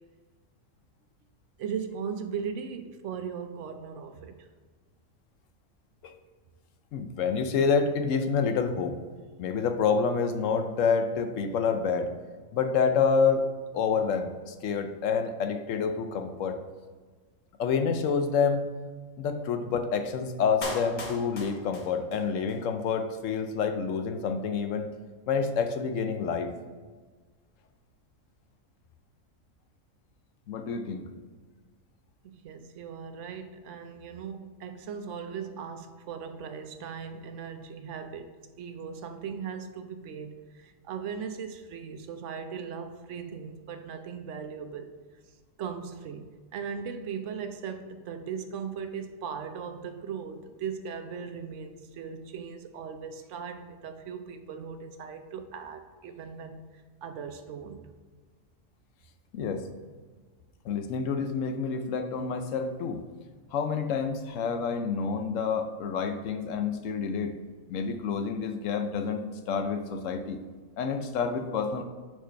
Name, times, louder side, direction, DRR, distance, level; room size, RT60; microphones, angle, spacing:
voice 1, 1.6-4.5 32.2-44.9 45.6-56.6 57.0-57.9, right 6 dB, 70° right, 8 dB, 0.9 m, -38 dB
voice 2, 6.9-9.0 9.4-12.1 12.5-13.5 13.7-16.6 17.6-18.7 19.2-24.9 25.3-26.5 30.5-31.1 59.3-59.7 60.6-63.0 63.5-67.4 67.7-70.4 70.8-71.8, left 5 dB, 75° left, 7 dB, 1.0 m, -28 dB
Clapping, 20.6-22.6 22.9-23.0, left 2 dB, 40° left, 0.9 m, -38 dB
4.7 x 4.5 x 5.6 m, 1.4 s
omnidirectional pair, 1.4 m